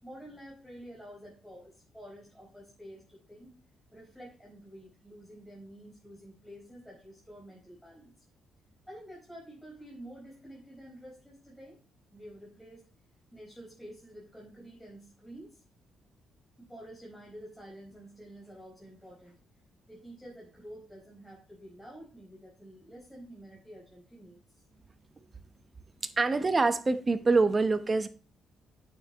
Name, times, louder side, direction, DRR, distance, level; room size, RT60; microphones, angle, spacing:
voice 1, 0.0-3.5 3.9-8.1 8.9-11.8 12.1-12.8 13.3-15.6 16.6-19.3 19.9-24.4, equal, ahead, -4 dB, 4.7 m, -49 dB
voice 2, 26.0-28.1, right 3 dB, 30° right, 10 dB, 0.9 m, -25 dB
9.3 x 7.2 x 3.0 m, 0.35 s
cardioid pair, 90°, 0 cm